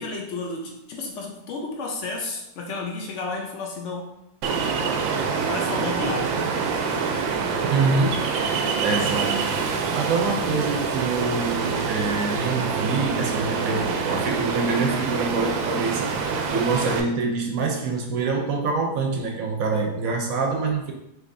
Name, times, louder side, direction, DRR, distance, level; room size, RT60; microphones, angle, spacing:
voice 1, 0.0-4.1 5.5-6.3, left 3 dB, 70° left, 1 dB, 0.7 m, -31 dB
Ocean, 4.4-17.0, right 5 dB, 90° right, 1.3 m, -26 dB
voice 2, 7.7-8.3 8.8-16.2 16.5-20.9, right 4 dB, 60° right, 2 dB, 0.9 m, -25 dB
5.9 x 2.9 x 2.6 m, 0.81 s
omnidirectional pair, 2.0 m